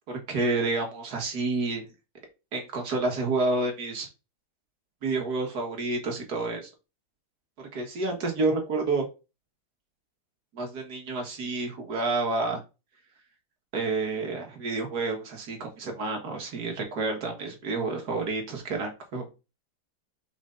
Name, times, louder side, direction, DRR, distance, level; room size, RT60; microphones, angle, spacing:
voice 1, 0.1-1.8 2.5-4.1 5.0-6.7 7.6-9.1 10.5-12.6 13.7-19.3, right 3 dB, 50° right, 3 dB, 2.0 m, -29 dB
5.5 x 5.0 x 3.8 m, 0.29 s
omnidirectional pair, 2.2 m